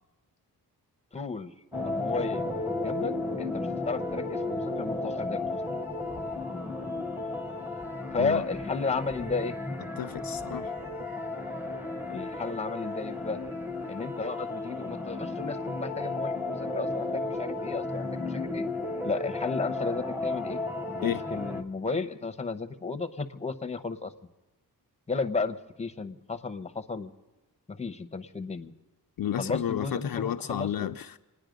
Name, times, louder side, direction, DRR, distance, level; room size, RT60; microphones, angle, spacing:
voice 1, 1.1-1.5 1.8-2.5 2.8-5.8 8.1-9.6 12.1-13.4 13.9-18.6 19.0-20.6 21.0-24.1 25.1-27.1 27.7-28.7 29.4-30.9, left 4 dB, 15° left, 0.8 m, -33 dB
sound 1, 1.7-21.6, left 2 dB, 5° right, 1.1 m, -33 dB
voice 2, 10.0-10.7 21.0-21.2 29.2-31.2, left 10 dB, 65° left, 0.5 m, -32 dB
28.0 x 9.9 x 5.2 m
wide cardioid pair, 105°, 38 cm